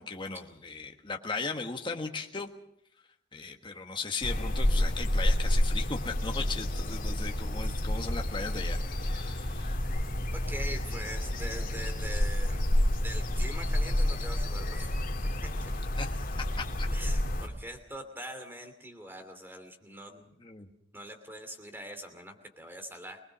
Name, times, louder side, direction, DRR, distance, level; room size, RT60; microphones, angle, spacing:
voice 1, 0.0-2.5 3.3-9.8 16.0-16.9 20.4-20.7, left 4 dB, 25° left, 3 dB, 1.5 m, -37 dB
sound 1, 4.2-17.5, left 1 dB, 45° left, 2.6 m, -29 dB
voice 2, 10.3-12.6 13.0-14.9 15.2-15.7 16.9-20.3 20.9-23.2, equal, 10° right, 7 dB, 2.6 m, -43 dB
24.0 x 19.5 x 6.2 m, 0.75 s
head